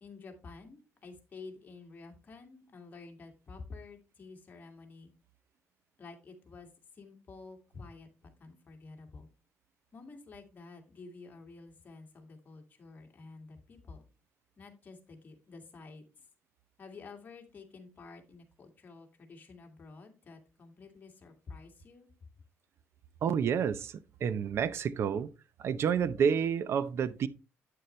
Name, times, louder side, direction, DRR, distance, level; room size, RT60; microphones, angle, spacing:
voice 1, 0.0-5.1 6.0-9.3 9.9-14.0 14.6-16.0 16.8-22.1, left 4 dB, 35° left, 2.1 m, -50 dB
voice 2, 23.2-23.9 24.2-25.3 25.6-27.3, right 7 dB, 60° right, 0.6 m, -29 dB
9.1 x 6.7 x 3.2 m
cardioid pair, 115°, 5 cm